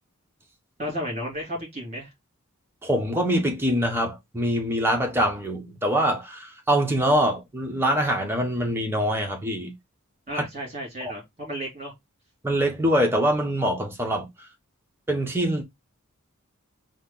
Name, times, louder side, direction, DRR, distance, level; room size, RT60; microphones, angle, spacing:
voice 1, 0.8-2.1 10.3-11.9, equal, 30° right, 2.4 m, -33 dB
voice 2, 2.8-9.7 11.0-11.1 12.4-14.3 15.1-15.6, equal, 10° right, 0.8 m, -24 dB
4.1 x 2.0 x 3.6 m
head